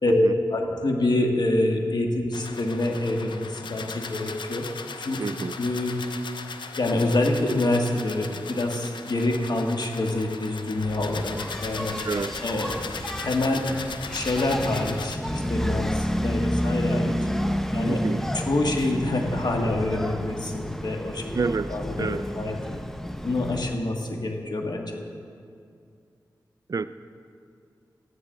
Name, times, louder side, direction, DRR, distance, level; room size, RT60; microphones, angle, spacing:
voice 1, 0.0-4.6 5.0-5.3 5.6-6.0 6.8-11.9 12.4-12.9 13.2-13.6 14.1-17.2 17.7-18.0 18.3-21.2 21.7-22.1 22.4-22.8 23.2-25.0, left 2 dB, 65° left, 2 dB, 1.4 m, -26 dB
sound 1, 2.3-15.2, left 5 dB, 80° left, 0.6 m, -38 dB
voice 2, 5.2-5.6 12.0-12.4 17.9-18.2 21.3-22.2 26.7-26.9, right 4 dB, 50° right, 13 dB, 0.4 m, -29 dB
Engine, 10.8-23.8, equal, 5° left, 0.6 m, -30 dB
14.0 x 10.5 x 3.7 m, 2.3 s
cardioid pair, 40°, 8 cm